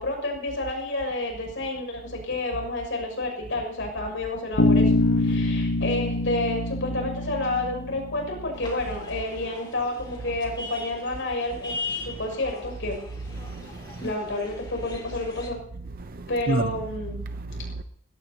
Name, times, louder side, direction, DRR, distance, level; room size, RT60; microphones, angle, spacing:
voice 1, 0.0-4.9 5.2-13.0 14.0-15.6 16.3-17.2, left 2 dB, 65° left, 6.7 m, -30 dB
Bass guitar, 4.6-8.6, left 2 dB, 85° left, 1.1 m, -24 dB
voice 2, 5.2-5.7 12.0-12.2 13.3-14.0 16.0-16.8 17.3-17.8, right 2 dB, 50° right, 0.7 m, -32 dB
sound 1, 8.5-15.5, left 3 dB, 25° left, 3.4 m, -40 dB
21.5 x 17.0 x 2.9 m
head